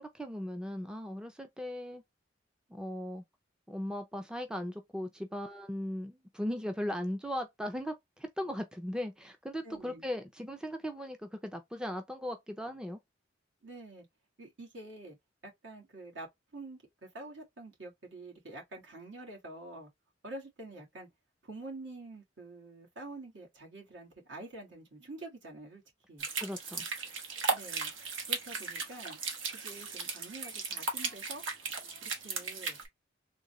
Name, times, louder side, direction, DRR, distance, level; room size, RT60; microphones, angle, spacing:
voice 1, 0.0-2.0 2.7-3.2 3.7-13.0 26.4-26.9, equal, 5° right, 0.4 m, -38 dB
voice 2, 9.6-10.0 13.6-14.1 14.4-15.2 15.4-19.9 20.2-21.1 21.4-25.8 26.1-26.3 27.5-27.9 28.2-29.2 29.5-31.4 32.0-32.8, right 2 dB, 70° right, 1.7 m, -47 dB
sound 1, 26.2-32.9, right 4 dB, 90° right, 1.1 m, -36 dB
3.8 x 2.3 x 3.0 m
head